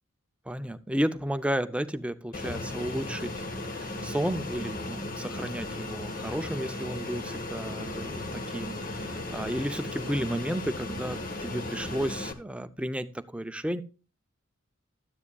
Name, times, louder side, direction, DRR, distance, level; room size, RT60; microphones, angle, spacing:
voice 1, 0.5-13.8, equal, 5° right, 11 dB, 0.5 m, -33 dB
Fixed-wing aircraft airplane, 2.3-12.3, left 2 dB, 40° left, 1.4 m, -36 dB
13.0 x 9.7 x 2.3 m, 0.34 s
head